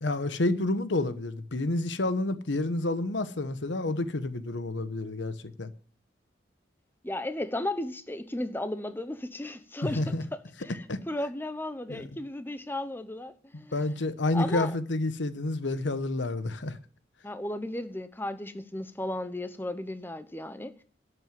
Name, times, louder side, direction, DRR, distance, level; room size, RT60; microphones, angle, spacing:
voice 1, 0.0-5.7 9.8-10.2 10.9-11.0 11.9-12.0 13.7-16.8, left 2 dB, 85° left, 1.1 m, -29 dB
voice 2, 7.0-10.0 10.3-13.9 14.3-14.8 17.2-20.8, left 1 dB, 10° left, 0.8 m, -35 dB
12.5 x 6.6 x 9.2 m
head